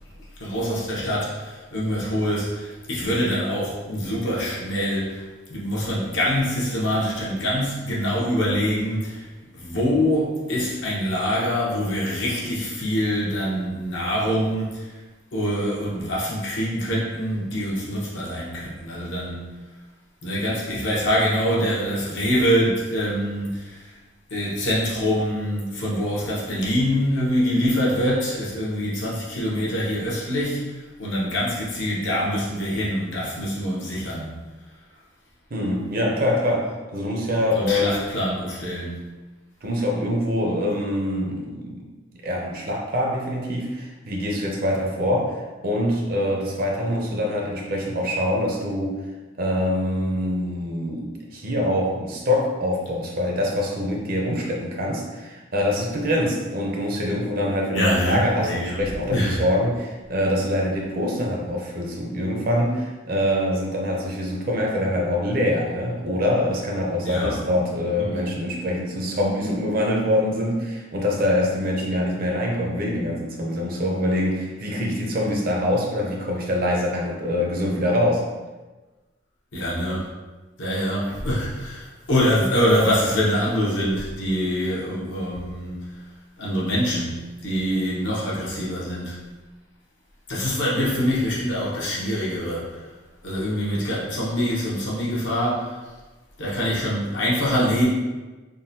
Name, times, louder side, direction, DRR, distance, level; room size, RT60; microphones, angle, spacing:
voice 1, 0.4-9.3 9.5-14.9 15.3-19.6 20.2-24.0 24.3-34.3 37.5-39.1 57.7-58.8 59.1-59.4 67.0-67.4 68.0-68.2 79.5-80.1 80.6-85.9 86.4-89.2 90.3-92.8 93.2-95.8 96.4-97.9, equal, 65° left, -5 dB, 0.9 m, -25 dB
voice 2, 35.5-38.0 39.6-41.8 42.2-49.0 49.4-78.2, left 1 dB, 45° right, -1 dB, 0.6 m, -24 dB
3.6 x 2.2 x 2.7 m, 1.2 s
head